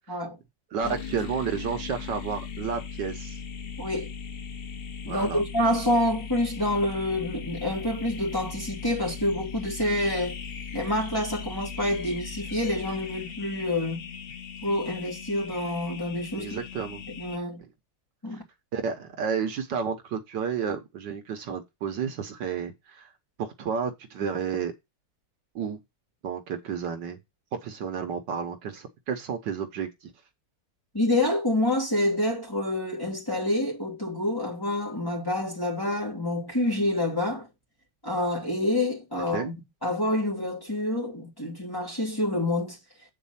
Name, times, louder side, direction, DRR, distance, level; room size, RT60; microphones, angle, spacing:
voice 1, 0.1-0.4 0.8-1.0 3.8-4.1 5.0-10.4 10.7-14.0 14.6-16.6 17.2-17.6 18.2-18.4 30.9-37.5 38.0-39.5 39.8-42.8, left 1 dB, 10° left, 2.6 m, -27 dB
voice 2, 0.7-3.4 5.1-5.4 16.3-17.1 17.6-17.7 18.3-18.4 18.7-23.1 23.4-24.7 25.5-25.8 26.2-27.2 27.6-30.1 39.3-39.5, right 6 dB, 70° right, 1.6 m, -31 dB
Rubber Orb, 0.8-17.4, left 6 dB, 50° left, 0.7 m, -38 dB
8.5 x 4.1 x 5.6 m
omnidirectional pair, 2.0 m